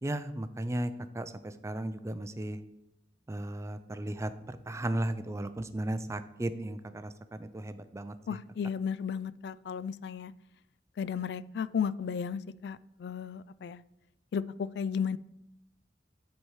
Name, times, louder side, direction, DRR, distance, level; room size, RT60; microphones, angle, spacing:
voice 1, 0.0-2.6 3.3-8.1, right 1 dB, 15° right, 11 dB, 0.4 m, -35 dB
voice 2, 8.3-10.3 11.0-13.8 14.3-15.2, left 7 dB, 65° left, 17 dB, 0.3 m, -34 dB
9.5 x 4.4 x 4.7 m, 0.84 s
head